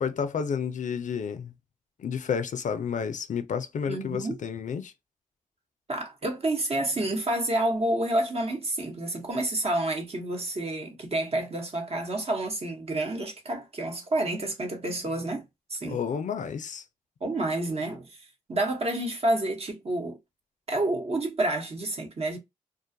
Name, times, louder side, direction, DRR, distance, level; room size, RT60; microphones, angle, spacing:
voice 1, 0.0-1.5 2.0-4.9 15.9-16.8, left 7 dB, 65° left, 0.4 m, -31 dB
voice 2, 3.9-4.4 5.9-15.4 15.7-16.0 17.2-18.2 18.5-20.2 20.7-22.4, right 1 dB, 45° right, 0.9 m, -29 dB
2.4 x 2.3 x 2.5 m
cardioid pair, 65°, 14 cm